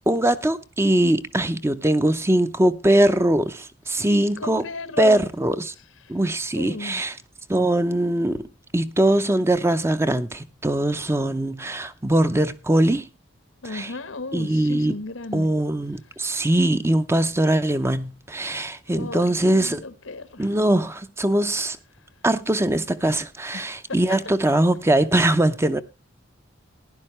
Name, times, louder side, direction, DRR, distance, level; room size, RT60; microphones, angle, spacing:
voice 1, 0.1-4.6 5.0-5.7 6.1-7.2 7.5-8.5 8.7-13.1 13.6-13.9 14.3-14.9 15.3-19.8 20.4-21.8 22.2-25.8, right 1 dB, 15° right, 0.6 m, -21 dB
voice 2, 3.9-5.3 6.0-6.2 6.6-7.0 13.6-15.5 18.9-20.5 23.5-23.6 23.9-24.2, left 3 dB, 85° left, 1.1 m, -34 dB
15.5 x 10.5 x 3.1 m
head